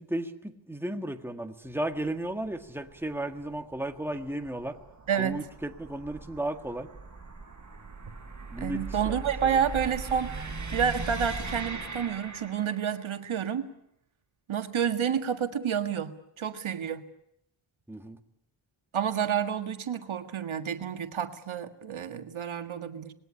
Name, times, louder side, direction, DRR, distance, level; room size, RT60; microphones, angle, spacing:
voice 1, 0.0-4.8 5.2-6.9 8.5-9.7 17.9-18.2, right 1 dB, 5° right, 6 dB, 1.8 m, -34 dB
sound 1, 1.7-13.0, right 4 dB, 40° right, 6.4 m, -40 dB
voice 2, 5.1-5.4 8.6-13.7 14.5-17.0 18.9-23.1, right 8 dB, 80° right, 7 dB, 1.8 m, -29 dB
26.5 x 21.0 x 10.0 m, 0.80 s
wide cardioid pair, 115°, 47 cm